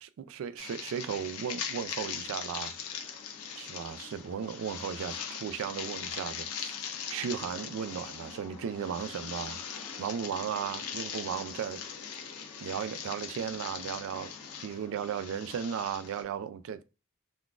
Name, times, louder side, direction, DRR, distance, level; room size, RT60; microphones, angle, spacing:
voice 1, 0.0-2.7 3.6-6.7 7.1-9.6 10.0-11.8 12.6-14.3 14.6-16.8, right 8 dB, 65° right, 0.3 m, -36 dB
sound 1, 0.6-16.2, left 7 dB, 85° left, 0.6 m, -40 dB
3.6 x 2.4 x 2.4 m
head